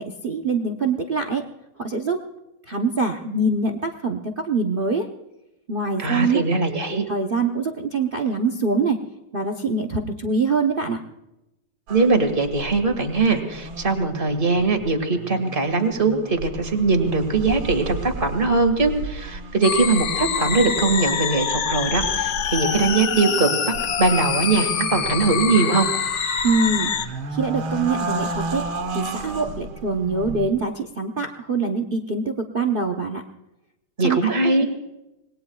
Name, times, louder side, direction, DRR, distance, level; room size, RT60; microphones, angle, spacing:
voice 1, 0.0-1.4 1.8-2.2 2.7-5.1 5.7-6.4 7.1-9.0 9.3-11.0 26.4-26.9 27.3-28.6 28.9-33.2 34.0-34.6, right 3 dB, 45° right, 5 dB, 0.7 m, -24 dB
voice 2, 6.0-7.0 11.9-23.5 24.0-25.9 34.0-34.7, right 3 dB, 25° right, 5 dB, 2.1 m, -21 dB
sound 1, 11.9-30.5, right 2 dB, 85° right, 2.2 m, -34 dB
sound 2, 19.6-27.1, left 7 dB, 65° left, 0.7 m, -25 dB
26.5 x 20.5 x 2.4 m, 0.93 s
omnidirectional pair, 2.2 m